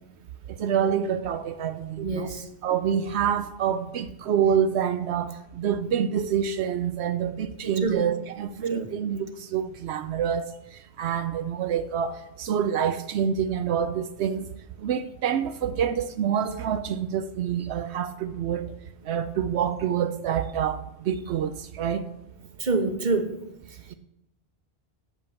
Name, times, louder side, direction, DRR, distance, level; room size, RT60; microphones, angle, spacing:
voice 1, 0.6-2.3 2.6-10.5 11.0-14.5 14.8-18.7 19.1-20.8 21.0-22.0, right 8 dB, 85° right, 0.9 m, -27 dB
voice 2, 2.0-2.4 7.8-8.0 8.7-8.9 22.6-23.3, right 3 dB, 45° right, 1.2 m, -26 dB
8.8 x 8.1 x 7.1 m
omnidirectional pair, 1.1 m